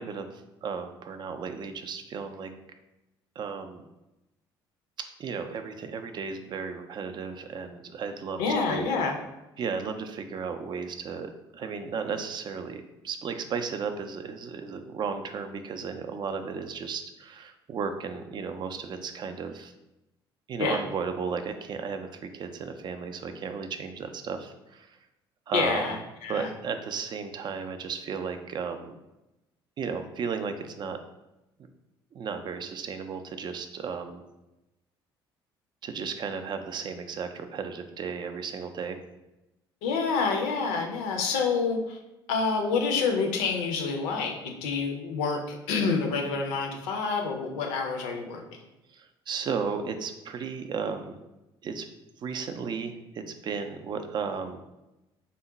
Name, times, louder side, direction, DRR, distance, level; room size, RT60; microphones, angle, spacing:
voice 1, 0.0-2.5 3.4-3.8 5.2-8.4 8.7-8.9 9.6-19.7 20.5-25.0 25.5-26.0 26.3-28.9 29.8-31.0 32.1-34.2 35.8-39.0 48.9-51.1 51.6-51.9 52.2-54.6, right 5 dB, 35° right, 7 dB, 0.4 m, -34 dB
voice 2, 8.4-9.2 20.6-20.8 25.5-26.5 39.8-42.0 42.3-48.6, left 4 dB, 60° left, 3 dB, 0.6 m, -28 dB
3.7 x 2.1 x 3.8 m, 0.96 s
figure-of-eight pair, 55°, 13 cm